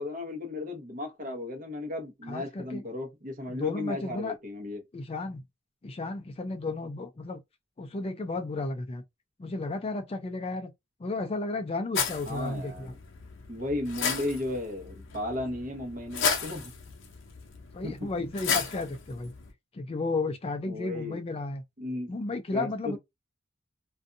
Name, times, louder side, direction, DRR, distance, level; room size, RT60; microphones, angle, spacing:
voice 1, 0.0-4.8 12.3-13.0 13.5-16.7 17.8-18.1 20.7-21.2 21.8-22.2 22.5-23.0, left 2 dB, 45° right, 0.9 m, -35 dB
voice 2, 2.3-2.8 3.5-4.3 4.9-5.4 5.8-7.4 7.8-9.0 9.4-10.7 11.0-12.9 17.7-19.3 19.7-21.6 22.1-23.0, left 3 dB, 30° left, 0.4 m, -33 dB
sound 1, 11.9-19.5, left 6 dB, 70° left, 0.6 m, -34 dB
2.6 x 2.2 x 2.5 m
head